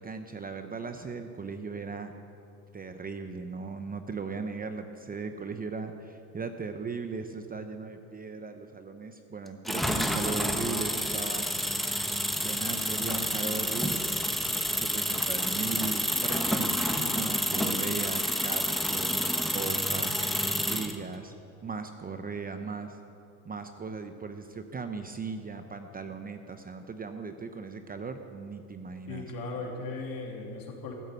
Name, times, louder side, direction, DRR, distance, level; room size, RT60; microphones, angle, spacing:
voice 1, 0.0-2.1 2.7-11.5 12.4-19.2 19.5-20.3 20.6-21.3 21.6-23.0 23.4-29.2, right 4 dB, 20° right, 7 dB, 0.8 m, -37 dB
sound 1, 9.7-21.0, equal, ahead, 1.0 m, -29 dB
voice 2, 29.1-30.9, left 3 dB, 50° left, 0 dB, 3.3 m, -37 dB
14.0 x 8.8 x 8.4 m, 2.8 s
supercardioid pair, 95°, 43 cm